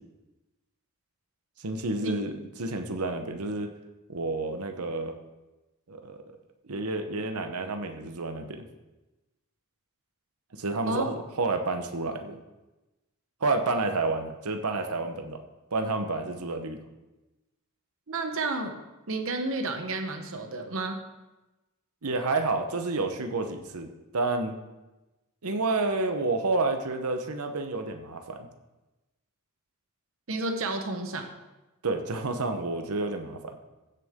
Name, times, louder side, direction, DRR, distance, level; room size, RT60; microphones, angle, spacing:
voice 1, 1.6-2.3 2.6-3.7 4.1-5.2 5.9-6.2 6.6-8.7 10.5-12.4 13.4-15.4 15.7-16.8 22.0-24.5 25.4-28.5 31.8-33.6, right 3 dB, 85° right, 6 dB, 1.0 m, -29 dB
voice 2, 18.1-18.7 19.1-21.0 30.3-31.3, right 2 dB, 60° right, 5 dB, 1.0 m, -31 dB
15.5 x 6.8 x 3.7 m, 1.1 s
head